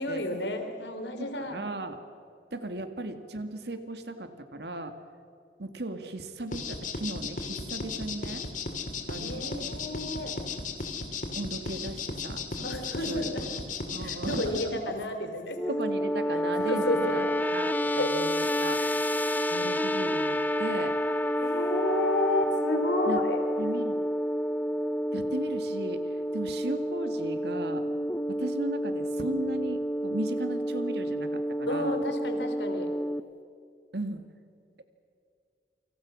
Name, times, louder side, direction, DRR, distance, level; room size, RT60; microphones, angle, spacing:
voice 1, 0.0-1.6 9.2-10.3 12.6-13.5 14.0-15.6 16.6-17.2 17.9-18.1 18.8-19.4 21.4-23.4 31.7-32.9, left 1 dB, 80° left, 6 dB, 3.4 m, -31 dB
voice 2, 1.2-2.0 2.5-4.9 5.6-8.4 9.1-9.6 11.4-13.3 13.9-14.8 15.7-17.2 17.5-19.1 19.5-21.0 23.1-23.2 23.6-24.0 25.1-26.0 26.3-27.9 28.3-32.0 33.9-34.2, right 1 dB, 70° right, 8 dB, 2.0 m, -36 dB
sound 1, 6.5-14.6, left 4 dB, 45° left, 2.8 m, -35 dB
sound 2, 15.5-33.2, equal, 10° left, 0.5 m, -29 dB
29.0 x 25.5 x 6.2 m, 2.4 s
head